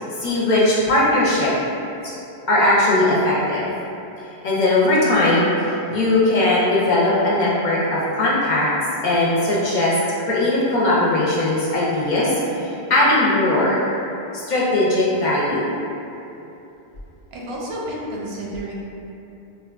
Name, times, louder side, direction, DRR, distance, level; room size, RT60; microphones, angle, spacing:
voice 1, 0.2-1.5 2.0-2.1 2.5-3.6 4.4-8.7 9.0-9.9 10.3-13.8 14.3-15.7, left 1 dB, 55° left, -6 dB, 0.6 m, -19 dB
voice 2, 17.3-18.7, right 1 dB, 85° right, -4 dB, 0.9 m, -30 dB
4.0 x 2.2 x 2.3 m, 2.9 s
omnidirectional pair, 1.0 m